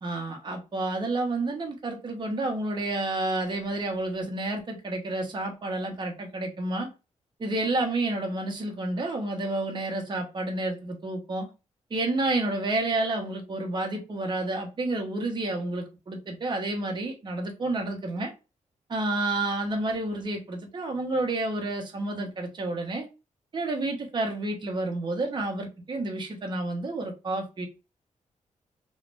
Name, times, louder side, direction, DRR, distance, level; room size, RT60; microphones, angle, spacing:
voice 1, 0.0-6.9 7.4-11.5 11.9-18.3 18.9-23.1 23.5-27.7, right 2 dB, 35° right, 1.1 m, -30 dB
3.1 x 2.8 x 3.3 m
cardioid pair, 115°, 13 cm